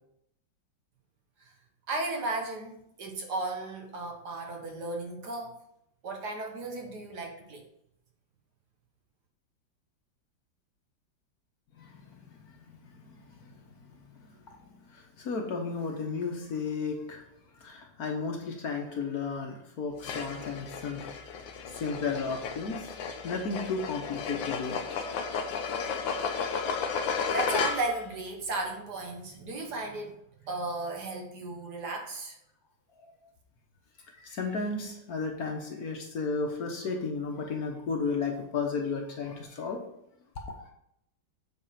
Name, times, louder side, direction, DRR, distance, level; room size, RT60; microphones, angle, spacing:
voice 1, 1.9-5.6 6.0-7.6 27.3-30.2 30.4-32.4, right 2 dB, 60° right, 1 dB, 1.8 m, -35 dB
voice 2, 11.8-14.6 14.9-17.2 17.5-21.1 21.7-22.9 23.2-24.8 33.0-33.1 34.2-39.8, left 4 dB, 55° left, 2 dB, 1.4 m, -34 dB
sound 1, 20.0-28.1, left 5 dB, 80° left, 1.5 m, -33 dB
7.9 x 4.2 x 5.7 m, 0.77 s
omnidirectional pair, 2.1 m